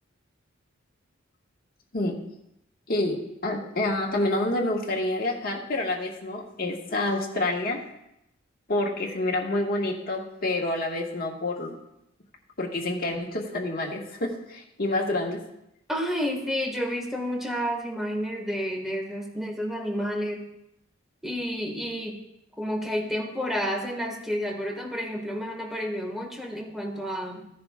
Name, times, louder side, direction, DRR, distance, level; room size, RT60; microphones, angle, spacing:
voice 1, 3.4-7.8 8.7-11.8 12.6-15.4, left 2 dB, 50° left, -1 dB, 1.6 m, -28 dB
voice 2, 15.9-20.4 21.2-22.2 22.6-27.5, equal, ahead, 1 dB, 1.7 m, -30 dB
15.0 x 10.0 x 2.4 m, 0.82 s
head